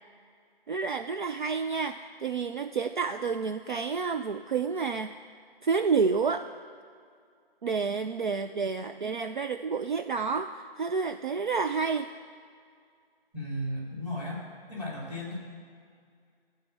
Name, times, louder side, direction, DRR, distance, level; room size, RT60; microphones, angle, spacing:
voice 1, 0.7-5.1 5.6-6.5 7.6-12.1, right 5 dB, 55° right, 8 dB, 0.4 m, -29 dB
voice 2, 13.3-14.4 14.7-15.4, left 1 dB, 5° right, -4 dB, 2.6 m, -35 dB
13.0 x 4.5 x 8.5 m, 2.2 s
figure-of-eight pair, 155°, 30 cm